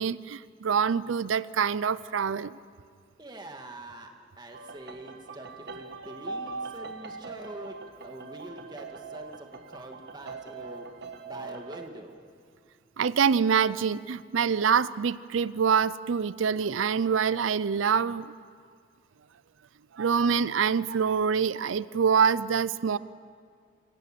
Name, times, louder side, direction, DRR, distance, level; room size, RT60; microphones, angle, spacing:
voice 1, 0.0-2.6 13.0-18.3 19.9-23.0, right 6 dB, 80° right, 18 dB, 0.5 m, -25 dB
voice 2, 3.2-4.1 4.4-7.8 8.0-10.9 11.3-12.2, right 1 dB, 20° right, 3 dB, 2.1 m, -44 dB
sound 1, 4.5-11.9, right 4 dB, 60° right, 1.4 m, -41 dB
27.0 x 18.0 x 7.5 m, 2.1 s
head